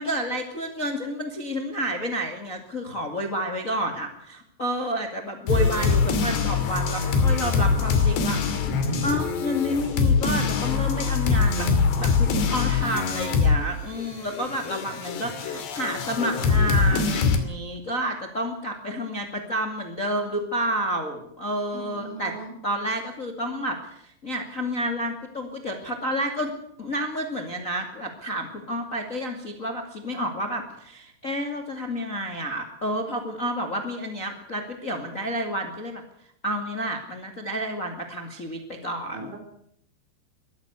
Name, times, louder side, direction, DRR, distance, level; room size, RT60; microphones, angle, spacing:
voice 1, 0.0-8.4 9.0-11.7 12.0-22.3 22.6-36.0 36.4-39.3, equal, 30° left, 4 dB, 1.4 m, -30 dB
sound 1, 5.5-13.7 13.9-17.4, left 5 dB, 70° left, 4.6 m, -23 dB
voice 2, 7.6-8.2 21.7-22.5 39.1-39.4, right 4 dB, 80° right, 6 dB, 6.6 m, -39 dB
23.0 x 14.5 x 8.1 m, 0.71 s
omnidirectional pair, 5.3 m